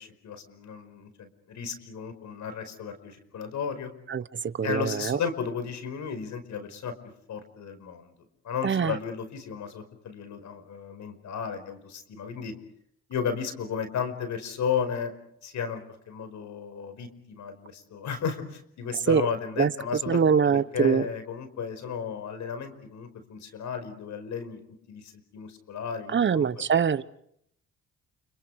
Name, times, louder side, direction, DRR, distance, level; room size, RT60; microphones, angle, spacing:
voice 1, 0.0-3.9 4.6-6.9 7.3-8.1 8.4-12.5 13.1-15.1 15.4-24.6 24.9-26.4, left 6 dB, 70° left, 5.1 m, -34 dB
voice 2, 4.6-5.2 8.6-8.9 19.1-19.2 19.6-19.7 20.1-21.1 26.1-27.1, right 7 dB, 40° right, 1.2 m, -23 dB
30.0 x 29.5 x 4.9 m
cardioid pair, 90°, 30 cm